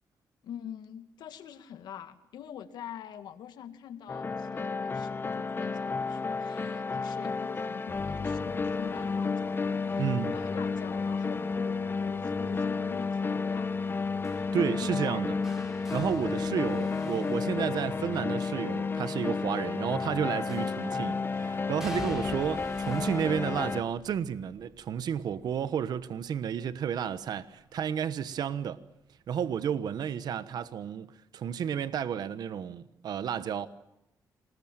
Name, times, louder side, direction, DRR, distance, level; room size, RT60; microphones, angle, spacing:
voice 1, 0.4-15.5, left 9 dB, 90° left, 2.0 m, -45 dB
sound 1, 4.1-23.8, left 4 dB, 30° left, 1.3 m, -31 dB
voice 2, 10.0-10.4 14.5-15.3 15.9-28.8 29.3-31.1 31.3-33.7, right 8 dB, 75° right, 1.2 m, -31 dB
sound 2, 14.2-18.3 20.5-21.1 21.8-27.6 28.0-28.4 29.6-29.7, equal, 5° right, 6.6 m, -49 dB
27.5 x 20.0 x 9.0 m
cardioid pair, 95°, 7 cm